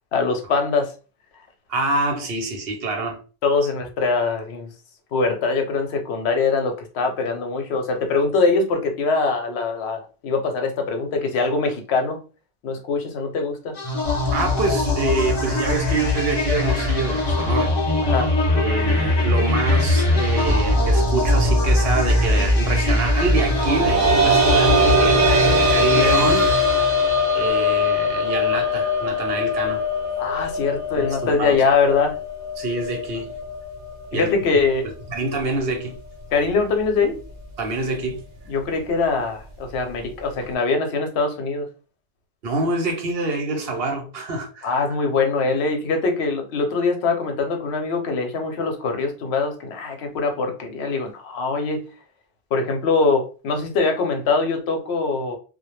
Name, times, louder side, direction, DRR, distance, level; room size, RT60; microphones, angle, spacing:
voice 1, 0.1-0.9 3.4-4.7 5.1-12.2 12.6-13.7 18.0-18.3 30.2-32.1 34.1-34.9 36.3-37.2 38.5-41.7 44.6-51.8 52.5-55.4, left 4 dB, 85° left, 0.9 m, -22 dB
voice 2, 1.7-3.2 14.3-17.7 18.5-25.2 25.7-26.5 27.3-29.8 30.9-31.6 32.6-33.3 34.1-34.3 35.1-36.0 37.6-38.2 42.4-44.7, right 3 dB, 70° right, 0.9 m, -26 dB
sound 1, 13.8-27.4, left 2 dB, 30° left, 0.6 m, -21 dB
sound 2, 23.4-34.8 35.2-35.3 36.8-36.9, left 1 dB, 55° right, 0.5 m, -22 dB
2.2 x 2.1 x 3.0 m
omnidirectional pair, 1.1 m